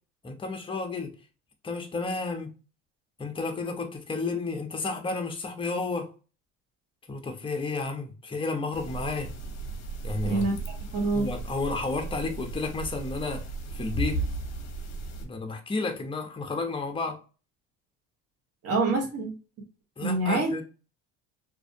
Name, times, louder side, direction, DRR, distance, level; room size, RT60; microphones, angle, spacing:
voice 1, 0.2-1.1 1.6-2.5 3.2-6.1 7.1-9.3 10.0-10.5 11.1-13.4 13.7-14.2 15.2-17.2 20.0-20.6, left 3 dB, 15° left, 0.6 m, -32 dB
sound 1, 8.7-15.3, right 2 dB, 50° left, 0.7 m, -35 dB
voice 2, 10.2-11.3 18.6-19.3 20.0-20.5, right 2 dB, 45° right, 0.9 m, -26 dB
2.5 x 2.0 x 2.6 m
supercardioid pair, 90°, 34 cm